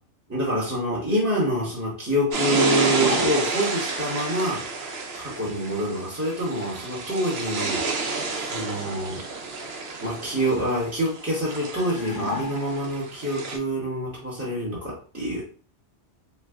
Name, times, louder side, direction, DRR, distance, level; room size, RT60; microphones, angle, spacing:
voice 1, 0.3-4.6 5.2-9.2 10.0-15.4, equal, 15° right, -7 dB, 0.9 m, -26 dB
sound 1, 2.3-13.6, right 3 dB, 60° right, 0.8 m, -30 dB
sound 2, 2.5-3.7 11.7-13.0, left 6 dB, 80° left, 1.0 m, -35 dB
3.2 x 2.0 x 3.5 m, 0.40 s
omnidirectional pair, 1.3 m